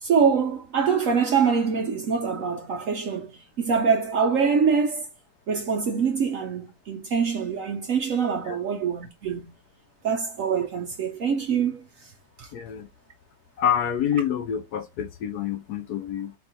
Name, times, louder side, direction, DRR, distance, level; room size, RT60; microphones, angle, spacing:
voice 1, 0.0-5.1 5.5-9.5 10.0-12.1 12.4-12.5, right 6 dB, 65° right, 0.9 m, -24 dB
voice 2, 12.5-12.9 13.6-16.3, left 9 dB, 70° left, 1.1 m, -27 dB
4.5 x 2.5 x 4.2 m
omnidirectional pair, 2.0 m